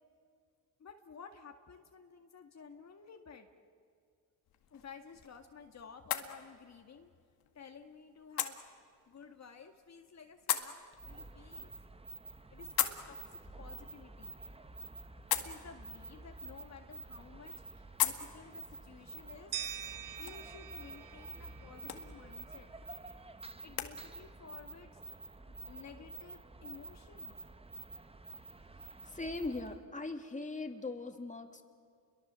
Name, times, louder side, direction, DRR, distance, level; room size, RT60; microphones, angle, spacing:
voice 1, 0.8-3.5 4.7-7.1 7.5-8.6 9.1-10.7 11.0-11.7 12.5-14.3 15.3-19.5 20.2-22.7 23.6-25.0 25.3-25.4 25.6-27.3, left 6 dB, 45° left, 4 dB, 2.0 m, -53 dB
sound 1, 4.4-23.9, left 11 dB, 75° left, 2.1 m, -42 dB
sound 2, 10.9-29.8, right 2 dB, 15° right, 1.3 m, -49 dB
sound 3, 19.5-22.4, right 9 dB, 55° right, 1.1 m, -45 dB
voice 2, 29.1-31.6, left 3 dB, 20° left, 5 dB, 2.7 m, -40 dB
29.5 x 23.0 x 7.6 m, 2.2 s
cardioid pair, 80°, 36 cm